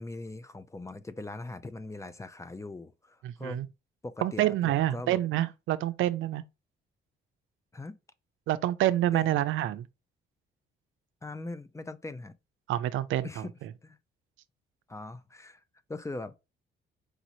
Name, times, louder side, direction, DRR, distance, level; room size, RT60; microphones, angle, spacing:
voice 1, 0.0-3.6 4.0-5.2 7.7-8.0 9.1-9.3 11.2-12.3 13.2-13.5 13.8-14.0 14.9-15.6 15.9-16.4, left 2 dB, 15° left, 0.5 m, -40 dB
voice 2, 3.2-3.7 4.2-6.4 8.5-9.9 12.7-13.5, right 13 dB, 80° right, 0.4 m, -27 dB
4.8 x 3.0 x 2.6 m
cardioid pair, 90°, 20 cm